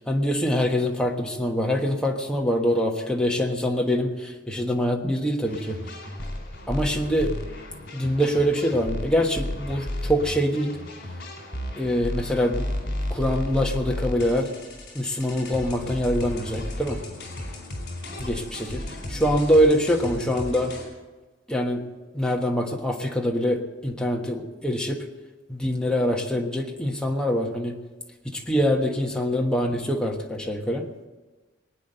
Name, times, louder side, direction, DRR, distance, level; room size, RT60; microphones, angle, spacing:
voice 1, 0.0-5.8 6.7-7.3 7.9-10.8 11.8-12.7 13.1-14.5 14.9-17.0 18.2-18.8 19.1-20.7 21.5-21.8 22.1-25.0 25.5-27.7 28.2-30.8, equal, 5° left, 1 dB, 1.3 m, -24 dB
sound 1, 5.4-20.8, left 1 dB, 55° left, 4.1 m, -33 dB
20.0 x 9.4 x 6.7 m, 1.2 s
head